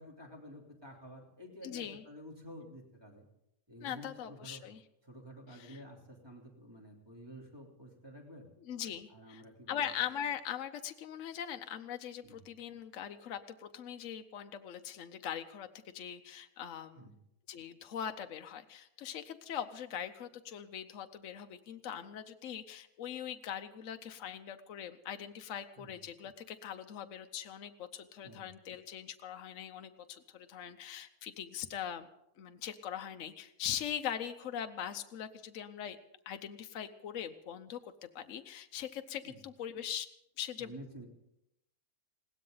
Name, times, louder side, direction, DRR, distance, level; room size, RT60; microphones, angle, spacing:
voice 1, 0.0-3.2 3.7-4.6 5.0-8.5 9.1-9.9 12.2-12.4 17.0-17.2 25.8-25.9 28.2-28.5 39.2-39.4 40.6-41.1, equal, 15° right, -2 dB, 3.3 m, -51 dB
voice 2, 1.6-2.0 3.8-4.8 5.5-5.8 8.7-9.4 9.7-15.7 15.9-17.1 17.5-32.1 32.4-36.0 36.3-40.1 40.4-40.7, left 9 dB, 65° left, 7 dB, 1.1 m, -41 dB
20.5 x 17.0 x 3.9 m, 0.84 s
omnidirectional pair, 1.5 m